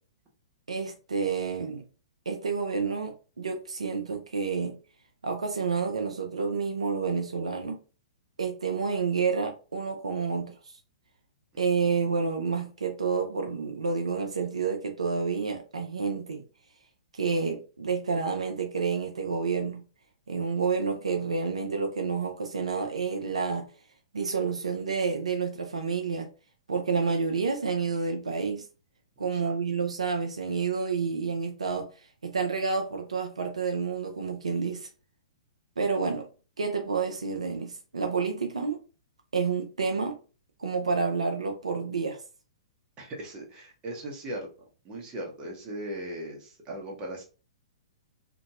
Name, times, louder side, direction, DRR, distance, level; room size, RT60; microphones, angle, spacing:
voice 1, 0.7-1.8 2.3-4.8 5.2-7.8 8.4-10.5 11.6-16.4 17.1-19.8 20.3-23.7 24.1-26.3 26.7-28.7 29.2-34.9 35.8-36.3 36.6-38.8 39.3-40.2 40.6-42.2, right 5 dB, 75° right, 0.5 m, -29 dB
voice 2, 29.2-29.6 43.0-44.5 44.8-47.2, right 1 dB, 25° right, 1.0 m, -38 dB
2.8 x 2.6 x 2.4 m
figure-of-eight pair, 115°, 3 cm